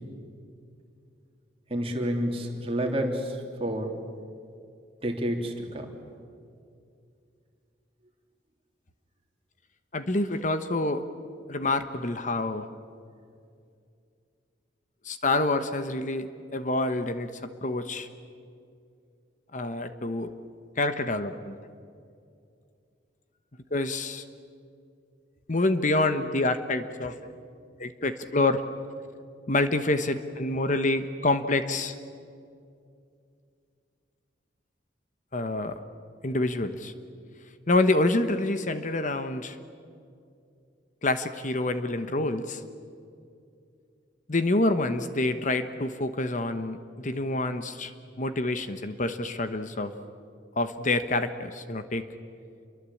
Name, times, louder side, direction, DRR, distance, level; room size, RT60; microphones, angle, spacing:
voice 1, 1.7-4.0 5.0-5.9, equal, 30° right, 2 dB, 3.3 m, -29 dB
voice 2, 9.9-11.0 11.5-12.7 15.0-18.1 19.5-20.3 20.8-21.6 23.7-24.2 25.5-27.3 27.8-28.6 29.5-31.9 35.3-35.8 36.2-36.9 37.7-39.6 41.0-42.6 44.3-47.9 48.2-49.9 50.6-52.1, left 2 dB, 40° left, 10 dB, 1.1 m, -27 dB
28.5 x 23.5 x 8.6 m, 2.4 s
head